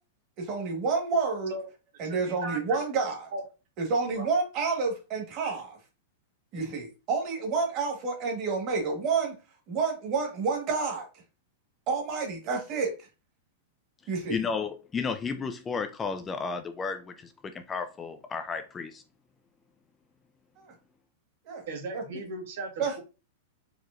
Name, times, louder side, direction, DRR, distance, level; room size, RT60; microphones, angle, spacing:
voice 1, 0.4-1.5 2.0-3.3 3.8-5.8 6.5-9.4 9.7-11.1 11.9-12.9 14.1-14.4 20.6-20.7 21.5-21.6 21.9-22.0 22.8-23.0, right 4 dB, 35° right, 1.4 m, -29 dB
voice 2, 2.0-2.8 3.3-3.4 4.2-4.3 21.7-23.0, right 2 dB, 65° right, 1.4 m, -37 dB
voice 3, 14.3-19.0, left 5 dB, 15° left, 0.3 m, -33 dB
4.5 x 3.0 x 2.5 m
supercardioid pair, 155°, 0 cm